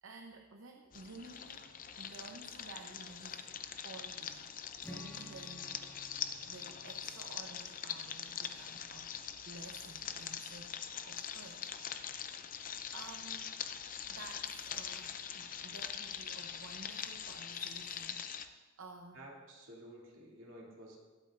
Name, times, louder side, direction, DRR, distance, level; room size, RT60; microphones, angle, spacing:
voice 1, 0.0-3.4 3.8-4.5 4.9-5.8 6.3-9.1 9.4-11.7 12.4-12.5 12.9-13.6 14.1-19.3, right 3 dB, 85° right, 3 dB, 0.8 m, -53 dB
sound 1, 0.9-18.5, left 8 dB, 45° left, 0.6 m, -43 dB
Strum, 4.8-8.9, equal, 15° left, 1.3 m, -55 dB
voice 2, 19.1-21.0, right 1 dB, 70° right, -3 dB, 2.6 m, -52 dB
20.5 x 8.6 x 2.5 m, 1.3 s
head